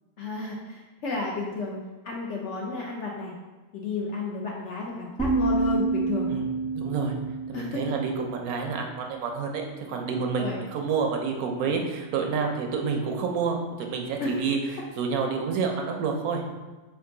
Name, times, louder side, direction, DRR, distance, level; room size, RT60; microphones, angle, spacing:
voice 1, 0.2-1.8 2.0-3.3 3.7-6.3 7.5-7.8 10.4-10.6 14.2-14.3, left 3 dB, 65° left, -2 dB, 0.7 m, -32 dB
sound 1, 5.2-9.1, right 3 dB, 10° right, 0.6 m, -29 dB
voice 2, 6.7-7.1 7.5-16.4, right 5 dB, 75° right, 3 dB, 1.0 m, -29 dB
4.5 x 2.5 x 3.7 m, 1.2 s
omnidirectional pair, 1.6 m